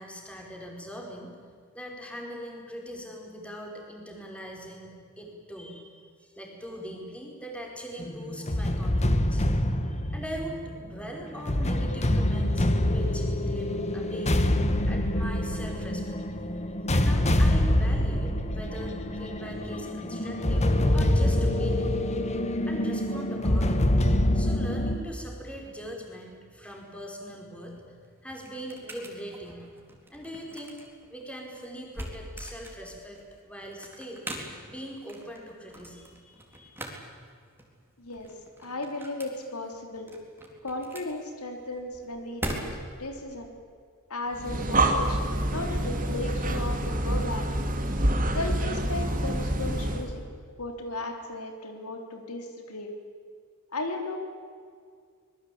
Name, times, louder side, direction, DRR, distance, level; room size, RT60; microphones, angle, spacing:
voice 1, 0.0-1.3 1.7-9.4 9.8-14.4 14.9-16.2 16.9-22.0 22.6-24.1 24.3-27.9 28.2-29.7 30.1-30.8 31.1-34.2 34.7-36.7, equal, 5° left, 0 dB, 5.0 m, -41 dB
sound 1, 8.0-25.0, left 1 dB, 30° left, 1.6 m, -25 dB
sound 2, 27.6-43.1, right 1 dB, 10° right, 4.0 m, -42 dB
voice 2, 38.0-38.3 38.6-40.1 40.6-43.5 44.1-47.6 48.3-50.2 50.6-52.9 53.7-54.2, left 2 dB, 85° left, 4 dB, 3.5 m, -35 dB
Breathing, 44.3-50.1, right 1 dB, 40° right, 2.8 m, -27 dB
25.5 x 21.5 x 8.7 m, 2.1 s
head